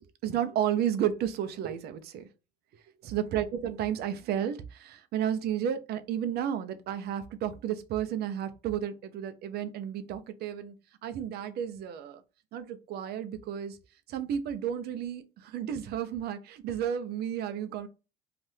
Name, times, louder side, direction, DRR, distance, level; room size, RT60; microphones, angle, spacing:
voice 1, 0.2-2.3 3.0-12.2 12.5-13.8 14.1-17.9, right 9 dB, 70° right, 0.6 m, -32 dB
2.7 x 2.4 x 3.3 m
cardioid pair, 110°, 17 cm